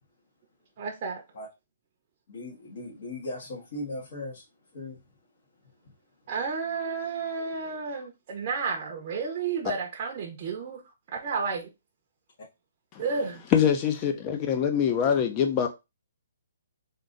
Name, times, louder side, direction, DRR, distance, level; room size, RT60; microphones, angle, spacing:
voice 1, 0.8-1.2 6.3-10.8 11.1-11.7 13.0-13.4, right 5 dB, 35° right, 0.8 m, -31 dB
voice 2, 2.3-4.4 4.7-5.0, left 1 dB, 55° left, 1.5 m, -38 dB
voice 3, 13.5-15.7, left 8 dB, 25° left, 0.7 m, -24 dB
3.6 x 2.7 x 3.9 m
hypercardioid pair, 160°, 0 cm